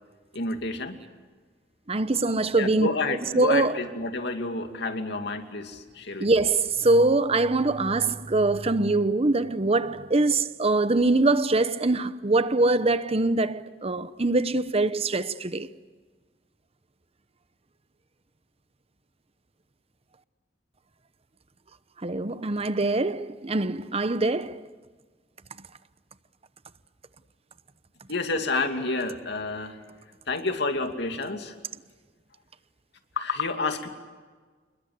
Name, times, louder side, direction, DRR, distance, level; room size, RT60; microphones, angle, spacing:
voice 1, 0.3-1.0 2.5-6.3 28.1-29.8 30.3-31.5 33.2-33.9, left 3 dB, 65° left, 2.6 m, -29 dB
voice 2, 1.9-2.9 3.3-3.8 6.2-15.7 22.0-24.6, right 2 dB, 35° right, 0.9 m, -23 dB
29.0 x 21.5 x 8.0 m
head